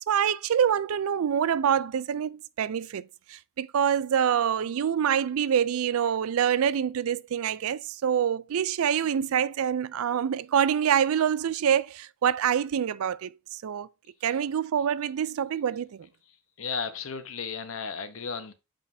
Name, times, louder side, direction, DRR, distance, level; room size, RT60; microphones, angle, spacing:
voice 1, 0.1-13.9 14.2-16.1, right 8 dB, 85° right, 0.4 m, -26 dB
voice 2, 16.6-18.5, left 5 dB, 75° left, 0.9 m, -34 dB
7.3 x 5.1 x 2.7 m
head